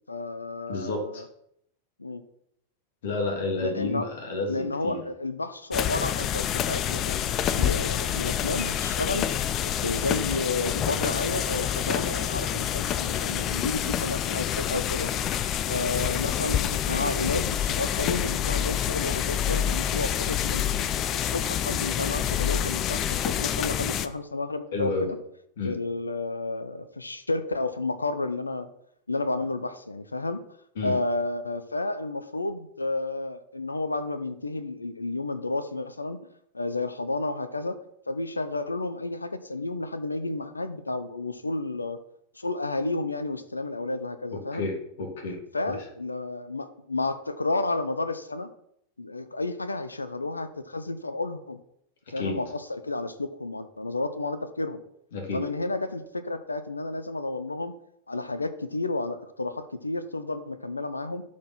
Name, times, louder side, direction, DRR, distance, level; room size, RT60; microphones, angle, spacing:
voice 1, 0.1-1.2 2.0-2.2 3.6-4.1 4.5-7.2 7.5-9.3 9.6-15.1 15.7-20.7 21.1-25.2 25.6-28.7 29.1-30.4 30.8-36.2 36.5-37.8 38.1-42.0 42.4-44.7 45.5-48.5 49.0-51.6 52.1-54.8 55.3-57.7 58.1-61.2, left 2 dB, 80° left, 12 dB, 0.7 m, -31 dB
voice 2, 0.7-1.2 3.0-5.0 24.7-25.1 25.6-25.7 30.8-30.9 44.3-44.7 45.0-45.4 45.7-45.8 52.2-52.4 55.1-55.4, left 3 dB, 60° left, 2 dB, 2.7 m, -30 dB
sound 1, 5.7-24.1, left 10 dB, 30° left, 0.6 m, -27 dB
12.0 x 4.7 x 5.8 m, 0.73 s
figure-of-eight pair, 90°, 0 cm